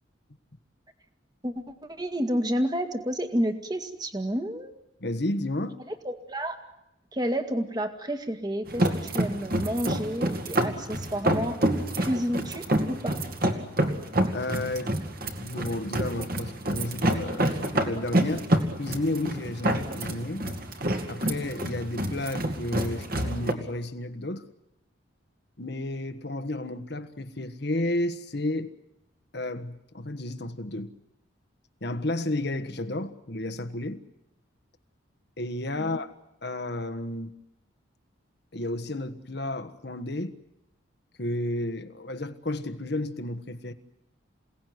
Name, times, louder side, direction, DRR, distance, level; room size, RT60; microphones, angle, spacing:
voice 1, 1.4-4.7 5.9-6.6 7.1-11.6 12.0-13.2 35.8-36.0, equal, 20° right, 1.9 m, -30 dB
voice 2, 5.0-5.8 14.3-14.9 15.4-18.5 18.8-20.4 21.1-24.4 25.6-28.7 29.3-30.9 31.8-34.0 35.4-36.1 36.4-37.4 38.5-40.4 41.2-43.7, left 1 dB, 55° left, 1.5 m, -32 dB
sound 1, 8.7-23.5, right 1 dB, 45° right, 2.4 m, -28 dB
28.0 x 18.0 x 9.5 m
head